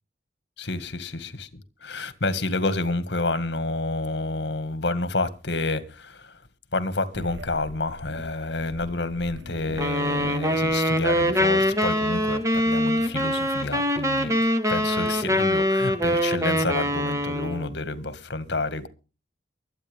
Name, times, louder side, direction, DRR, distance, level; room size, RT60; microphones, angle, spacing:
voice 1, 0.6-1.5 1.8-6.4 6.7-14.3 14.7-18.9, left 2 dB, 70° left, 1.8 m, -29 dB
sound 1, 7.1-11.3, right 1 dB, 90° right, 1.3 m, -42 dB
sound 2, 9.8-17.7, equal, 15° right, 1.8 m, -24 dB
23.5 x 9.2 x 3.5 m
head